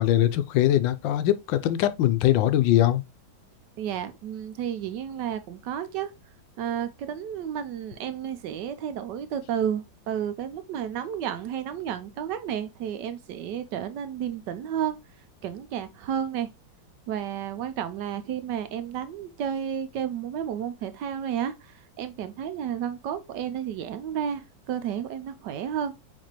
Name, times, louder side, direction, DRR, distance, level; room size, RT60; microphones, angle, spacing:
voice 1, 0.0-3.0, left 13 dB, 80° left, 1.3 m, -22 dB
voice 2, 3.8-6.1 6.6-15.0 15.4-16.5 17.1-25.9, right 9 dB, 75° right, 1.2 m, -32 dB
4.4 x 4.1 x 2.9 m
omnidirectional pair, 2.0 m